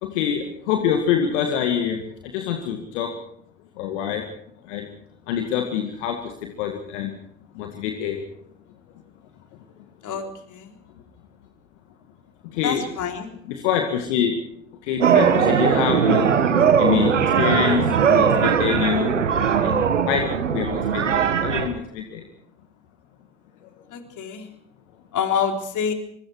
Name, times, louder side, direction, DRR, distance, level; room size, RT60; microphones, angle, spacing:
voice 1, 0.0-2.0 2.3-3.1 3.8-4.3 4.7-4.9 5.3-7.1 7.6-8.2 12.4-12.9 13.5-14.4 14.8-16.3 16.8-19.1 19.6-22.2, left 8 dB, 75° left, 4 dB, 2.1 m, -25 dB
voice 2, 10.0-10.7 12.6-13.3 23.9-24.5 25.1-25.9, left 7 dB, 55° left, 4 dB, 3.9 m, -27 dB
sound 1, 15.0-21.7, right 7 dB, 85° right, 1.5 m, -19 dB
26.0 x 23.5 x 4.8 m, 0.72 s
figure-of-eight pair, 50°, 36 cm